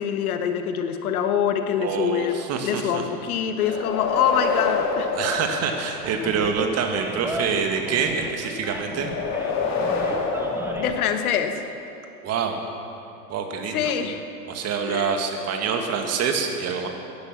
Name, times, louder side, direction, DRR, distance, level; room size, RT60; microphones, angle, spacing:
voice 1, 0.0-5.1 10.8-11.6 13.7-14.2 14.9-15.1, left 8 dB, 65° left, 7 dB, 1.4 m, -25 dB
voice 2, 1.8-3.0 5.2-9.1 12.2-12.7 13.3-13.9 14.5-16.9, right 6 dB, 35° right, 4 dB, 1.9 m, -26 dB
sound 1, 3.6-6.4 8.9-11.7, left 4 dB, 35° left, 2.7 m, -27 dB
Animal, 6.0-11.0, right 1 dB, 5° right, 1.3 m, -36 dB
15.5 x 10.5 x 7.3 m, 2.7 s
hypercardioid pair, 100°, 46 cm